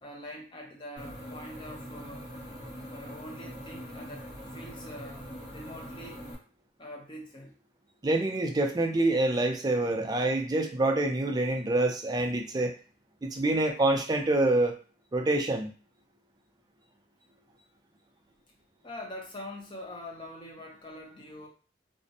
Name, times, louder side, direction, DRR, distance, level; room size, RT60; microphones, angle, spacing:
voice 1, 0.0-2.3 2.9-5.2 5.5-6.2 6.8-7.5 18.8-21.5, left 1 dB, 30° left, 0 dB, 0.7 m, -44 dB
sound 1, 1.0-6.4, equal, 85° left, 1.2 m, -43 dB
voice 2, 8.0-12.7 13.2-14.8 15.1-15.7, right 2 dB, 25° right, 3 dB, 0.4 m, -26 dB
2.5 x 2.1 x 2.7 m, 0.37 s
head